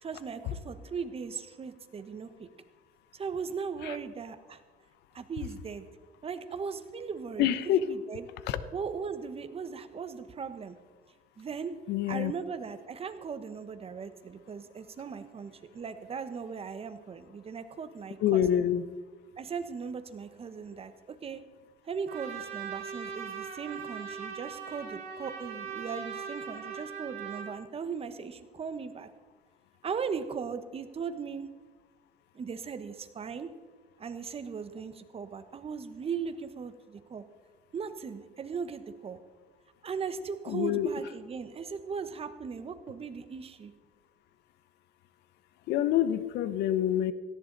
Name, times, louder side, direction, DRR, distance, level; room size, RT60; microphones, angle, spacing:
voice 1, 0.0-2.5 3.1-4.6 5.1-5.9 6.2-8.2 8.7-10.8 11.4-11.7 12.1-18.5 19.4-21.4 21.8-29.1 29.8-31.5 32.3-33.5 34.0-37.2 37.7-39.2 39.8-43.7, right 6 dB, 35° right, 10 dB, 1.2 m, -38 dB
voice 2, 7.4-7.8 8.5-8.6 11.9-12.3 18.2-18.8 40.5-40.9 45.7-47.1, left 11 dB, 85° left, 14 dB, 0.9 m, -26 dB
Trumpet, 22.1-27.5, right 6 dB, 70° right, 4.4 m, -40 dB
17.5 x 14.5 x 4.1 m, 1.4 s
cardioid pair, 110°, 17 cm